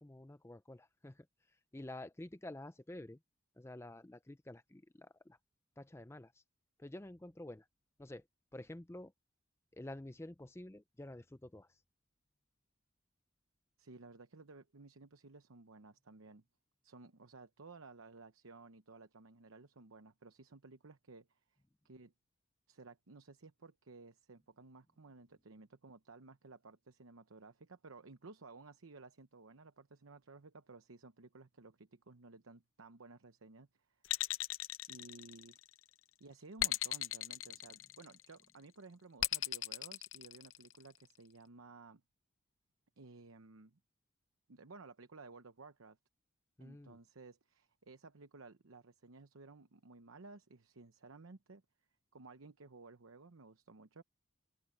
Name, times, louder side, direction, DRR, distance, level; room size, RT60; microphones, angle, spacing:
voice 1, 0.0-3.2 3.6-5.4 5.8-6.4 6.8-7.7 8.0-8.3 8.5-9.1 9.7-11.8 46.6-47.0, left 1 dB, 15° left, 0.5 m, -50 dB
voice 2, 13.8-16.4 16.8-22.1 22.7-34.0 34.9-35.6 36.2-42.0 43.0-43.8 44.5-46.0 46.6-51.6 52.1-54.0, right 3 dB, 90° right, 0.9 m, -56 dB
sound 1, 34.1-35.7 36.6-38.3 39.2-40.8, left 14 dB, 75° left, 0.7 m, -37 dB
head